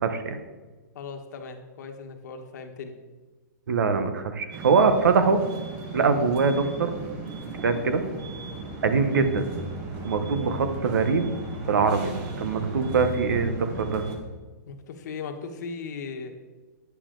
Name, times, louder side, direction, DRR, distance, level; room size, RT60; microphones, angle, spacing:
voice 1, 0.0-0.4 3.7-5.4 5.9-6.9 7.6-8.0 8.8-9.4 10.0-11.3 11.7-12.1 12.4-14.0, right 5 dB, 85° right, 9 dB, 1.0 m, -23 dB
voice 2, 0.9-3.0 14.7-16.3, left 5 dB, 65° left, 5 dB, 1.2 m, -37 dB
sound 1, 4.5-14.2, right 3 dB, 35° right, 1.4 m, -36 dB
9.4 x 7.0 x 3.8 m, 1.3 s
hypercardioid pair, 145°, 10 cm